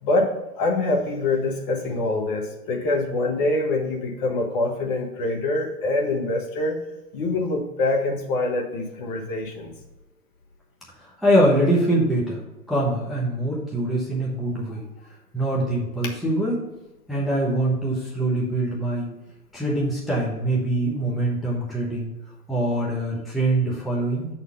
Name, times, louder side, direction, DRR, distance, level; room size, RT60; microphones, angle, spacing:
voice 1, 0.0-6.8 7.1-9.7, left 2 dB, 30° left, 2 dB, 1.4 m, -25 dB
voice 2, 11.0-12.4 12.7-14.8 15.3-16.7 17.1-19.1 19.5-22.1 22.5-24.3, right 1 dB, ahead, -6 dB, 1.1 m, -23 dB
7.1 x 4.3 x 5.4 m, 1.1 s
hypercardioid pair, 125°, 48 cm